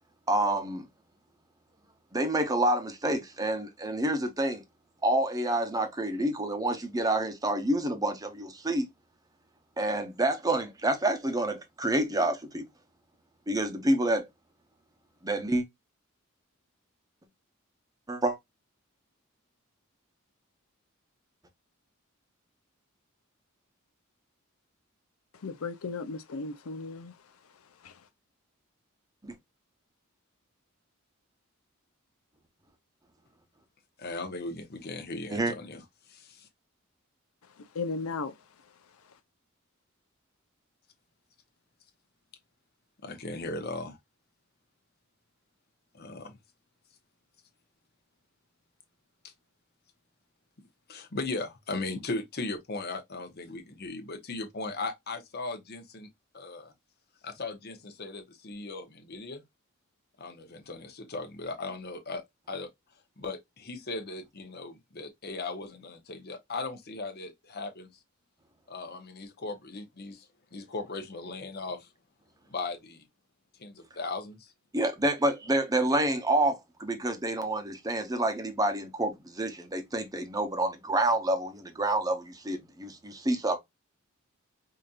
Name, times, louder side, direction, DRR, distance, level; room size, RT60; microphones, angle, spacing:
voice 1, 0.3-0.8 2.1-4.6 5.0-8.9 9.8-12.7 13.5-14.3 15.2-15.6 18.1-18.4 29.2-29.3 35.3-35.5 74.7-83.6, right 1 dB, 15° right, 0.8 m, -28 dB
voice 2, 25.4-27.1 27.8-27.9 37.7-38.3, left 4 dB, 85° left, 0.6 m, -35 dB
voice 3, 34.0-35.8 36.1-36.5 43.0-44.0 45.9-46.3 49.2-49.3 50.9-56.1 56.3-56.7 57.2-59.4 60.2-62.7 63.2-68.0 68.7-71.9 72.5-73.1 73.6-74.5, left 3 dB, 50° left, 0.9 m, -38 dB
5.0 x 2.7 x 2.4 m
head